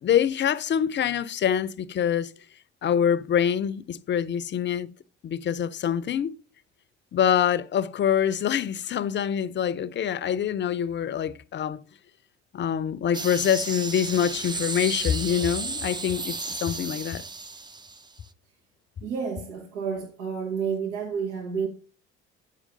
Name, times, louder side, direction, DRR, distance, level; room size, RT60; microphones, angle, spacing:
voice 1, 0.0-2.3 2.8-4.9 5.2-6.3 7.1-11.8 12.5-17.2, left 9 dB, 35° left, 0.6 m, -25 dB
sound 1, 13.1-18.3, right 3 dB, 15° right, 0.4 m, -34 dB
voice 2, 19.0-21.7, right 6 dB, 85° right, 1.3 m, -30 dB
8.3 x 5.0 x 3.8 m
hypercardioid pair, 60°, 33 cm